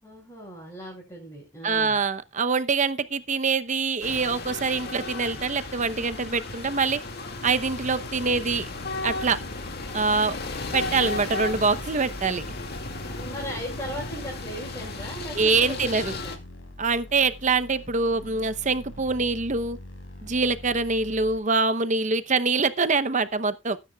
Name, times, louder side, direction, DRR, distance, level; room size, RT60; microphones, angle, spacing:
voice 1, 0.0-2.0 13.1-16.4, equal, 15° left, 6.5 m, -38 dB
voice 2, 1.6-7.0 7.4-8.7 9.0-9.4 9.9-10.4 10.7-12.4 15.4-16.2 16.8-19.8 20.2-23.8, right 4 dB, 40° right, 0.9 m, -24 dB
sound 1, 4.0-16.4, left 3 dB, 55° left, 2.2 m, -35 dB
sound 2, 7.6-21.4, left 1 dB, 80° left, 4.6 m, -43 dB
19.0 x 9.9 x 2.4 m
head